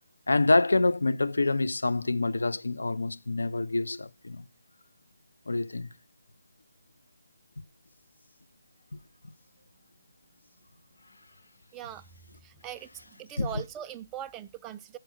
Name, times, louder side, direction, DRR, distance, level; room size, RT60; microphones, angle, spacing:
voice 1, 0.3-4.5 5.5-5.9 13.4-13.6, left 2 dB, 80° left, 0.5 m, -26 dB
voice 2, 11.7-12.0 12.4-12.9 13.2-15.0, right 11 dB, 15° right, 0.4 m, -40 dB
7.7 x 4.6 x 6.3 m
figure-of-eight pair, 155°, 0 cm